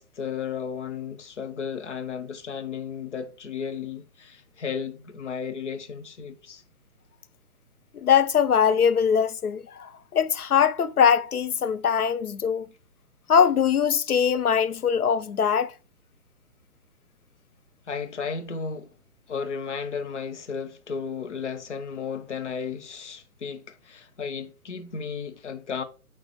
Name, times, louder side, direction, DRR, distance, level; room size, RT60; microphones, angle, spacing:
voice 1, 0.0-6.6 17.9-18.9 19.3-25.8, left 6 dB, 55° left, 1.0 m, -34 dB
voice 2, 8.0-12.7 13.3-15.7, left 7 dB, 85° left, 0.6 m, -22 dB
8.9 x 3.8 x 3.1 m
figure-of-eight pair, 140°, 43 cm